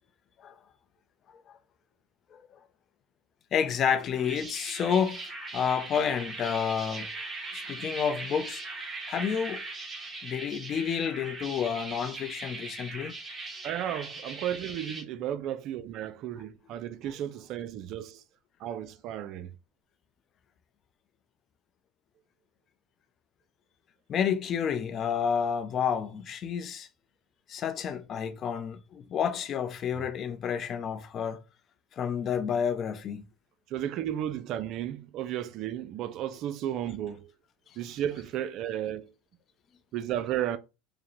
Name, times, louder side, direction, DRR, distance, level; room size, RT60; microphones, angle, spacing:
voice 1, 3.5-7.1 7.5-8.6 9.1-9.6 10.2-13.1 24.1-26.9 27.5-31.4 31.9-33.2, left 7 dB, 40° left, 0.6 m, -30 dB
sound 1, 4.0-15.0, right 3 dB, 20° right, 1.5 m, -40 dB
voice 2, 13.6-18.2 18.6-19.5 33.7-37.3 37.8-39.1 39.9-40.6, right 11 dB, 55° right, 0.4 m, -33 dB
4.8 x 2.1 x 3.1 m
supercardioid pair, 105°, 0 cm